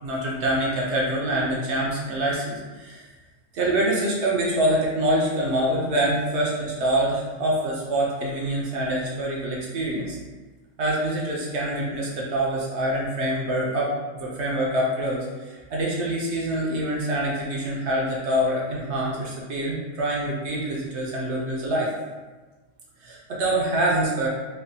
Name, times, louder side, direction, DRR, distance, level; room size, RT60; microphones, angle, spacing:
voice 1, 0.0-3.1 3.5-10.2 10.8-21.9 23.0-24.3, right 1 dB, 65° right, -4 dB, 0.8 m, -25 dB
3.2 x 2.1 x 2.6 m, 1.3 s
omnidirectional pair, 1.3 m